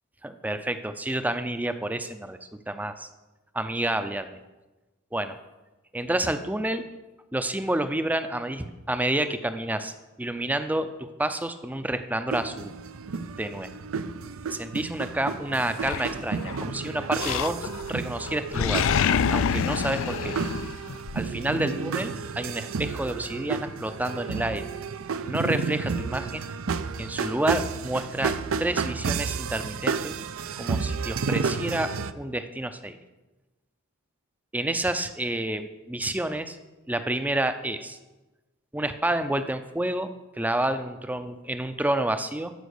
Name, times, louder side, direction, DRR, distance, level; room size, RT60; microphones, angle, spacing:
voice 1, 0.2-2.4 2.7-3.1 3.5-4.4 5.1-5.4 5.9-6.8 7.3-9.9 10.2-12.7 13.4-13.7 14.5-18.8 19.3-20.3 21.1-24.6 25.3-26.4 27.0-30.1 30.6-33.0 34.5-36.6 36.9-38.0 38.7-42.5, right 1 dB, 10° right, 10 dB, 0.5 m, -29 dB
sound 1, 12.3-32.1, right 5 dB, 70° right, 0.5 m, -31 dB
Animal, 15.8-16.6 17.2-17.9 18.2-21.2, left 7 dB, 65° left, 0.4 m, -26 dB
13.0 x 5.1 x 6.6 m, 1.1 s
head